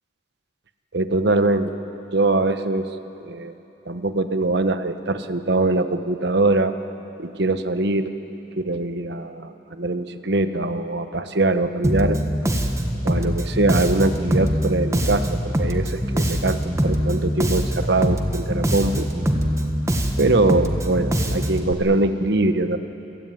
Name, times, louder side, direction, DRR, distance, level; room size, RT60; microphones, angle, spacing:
voice 1, 0.9-1.7 2.1-2.9 3.2-3.5 3.9-6.8 7.2-8.1 8.6-12.2 13.0-19.1 20.2-22.8, right 2 dB, 65° right, 9 dB, 1.1 m, -22 dB
Bass guitar, 11.8-21.7, equal, 15° right, 1.4 m, -23 dB
27.5 x 17.0 x 9.3 m, 3.0 s
head